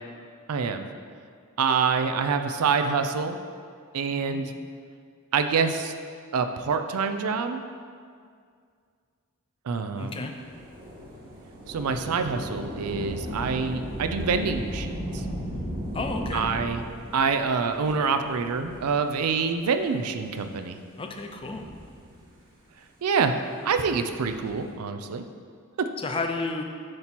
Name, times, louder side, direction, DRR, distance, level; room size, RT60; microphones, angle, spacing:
voice 1, 0.5-0.9 1.6-3.4 3.9-4.5 5.3-5.9 6.3-7.6 9.7-10.2 11.7-15.2 16.3-16.8 17.1-20.8 23.0-23.3 23.6-25.2, right 5 dB, 80° right, 8 dB, 0.4 m, -26 dB
voice 2, 4.1-4.4 10.0-10.3 15.9-16.5 21.0-21.6 26.0-26.6, left 3 dB, 25° left, 4 dB, 0.5 m, -32 dB
Thunder / Rain, 10.4-19.4 20.1-20.2 21.1-22.4 23.9-24.7, equal, 40° right, 1.4 m, -36 dB
7.7 x 2.9 x 5.8 m, 2.2 s
head